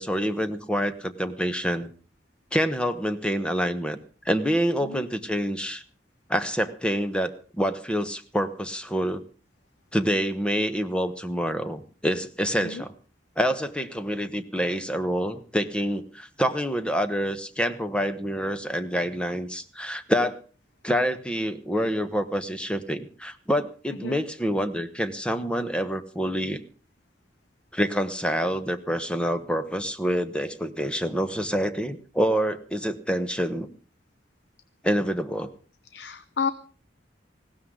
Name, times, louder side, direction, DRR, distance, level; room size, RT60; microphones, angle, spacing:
voice 1, 0.0-1.9 2.5-4.0 4.2-5.8 6.3-9.2 9.9-12.9 13.4-20.4 20.8-26.6 27.7-33.7 34.8-35.5, equal, 5° left, 9 dB, 1.1 m, -27 dB
voice 2, 35.9-36.5, left 5 dB, 65° left, 13 dB, 0.8 m, -31 dB
19.0 x 16.0 x 3.8 m, 0.37 s
head